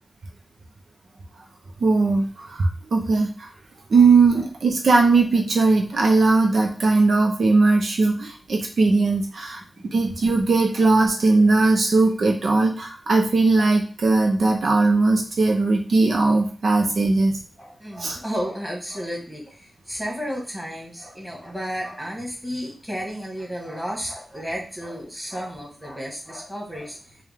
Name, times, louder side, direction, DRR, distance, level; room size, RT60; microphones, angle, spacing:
voice 1, 1.8-3.5 3.9-9.6 9.9-17.3 18.0-18.2, right 3 dB, 75° right, 2 dB, 0.7 m, -19 dB
voice 2, 17.6-27.2, equal, 5° right, -3 dB, 1.6 m, -32 dB
4.7 x 2.3 x 3.5 m, 0.37 s
wide cardioid pair, 100°, 0 cm